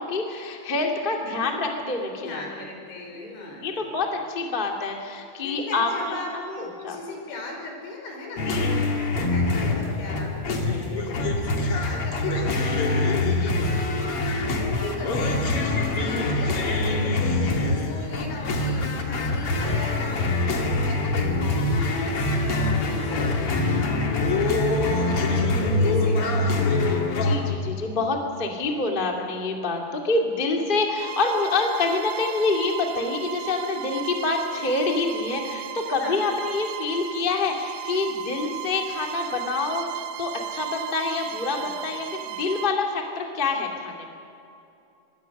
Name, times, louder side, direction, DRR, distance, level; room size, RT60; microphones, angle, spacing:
voice 1, 0.0-2.4 3.1-7.0 8.4-8.8 10.7-11.5 20.4-20.6 26.7-44.0, left 3 dB, 25° left, 1 dB, 1.2 m, -27 dB
voice 2, 2.2-3.9 5.4-26.6 35.8-36.3 41.5-41.7, left 2 dB, 70° left, 1 dB, 7.0 m, -37 dB
sound 1, 8.4-27.4, left 2 dB, 45° left, 2.0 m, -24 dB
Bowed string instrument, 31.0-42.8, right 12 dB, 85° right, 3.4 m, -36 dB
25.0 x 22.0 x 6.6 m, 2.7 s
omnidirectional pair, 5.6 m